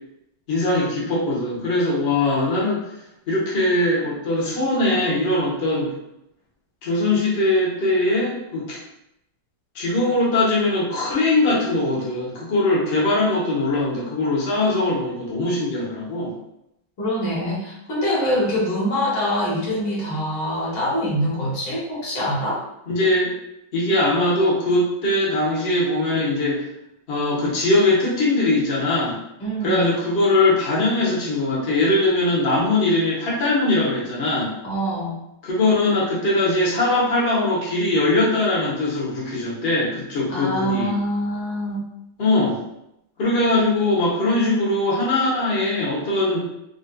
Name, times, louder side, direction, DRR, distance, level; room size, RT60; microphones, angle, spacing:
voice 1, 0.5-2.8 3.3-5.9 6.8-8.8 9.7-16.3 22.9-23.3 23.7-26.6 27.1-29.2 29.6-34.5 35.4-40.9 42.2-42.6 43.2-46.5, left 2 dB, 45° left, -6 dB, 0.8 m, -21 dB
voice 2, 17.0-22.6 29.4-29.9 34.6-35.2 40.3-41.8, equal, 65° left, -6 dB, 1.7 m, -24 dB
4.0 x 2.5 x 2.2 m, 0.82 s
omnidirectional pair, 2.2 m